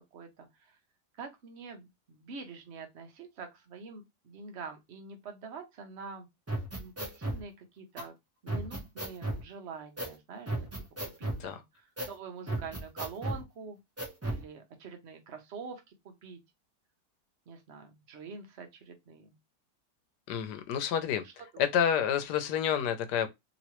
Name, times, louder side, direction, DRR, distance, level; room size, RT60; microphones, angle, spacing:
voice 1, 0.1-0.5 1.2-6.3 6.8-8.2 8.4-10.8 11.2-11.6 12.0-13.8 14.3-16.4 17.5-19.3, right 5 dB, 50° right, 0.9 m, -45 dB
sound 1, 6.5-7.4 8.0-8.1 8.5-9.4 10.0-10.2 10.5-11.4 12.0-12.1 12.5-13.4 14.0-14.4, right 1 dB, 15° right, 0.5 m, -34 dB
voice 2, 20.3-21.2 21.6-23.3, left 8 dB, 80° left, 1.2 m, -29 dB
3.0 x 3.0 x 2.9 m
omnidirectional pair, 1.8 m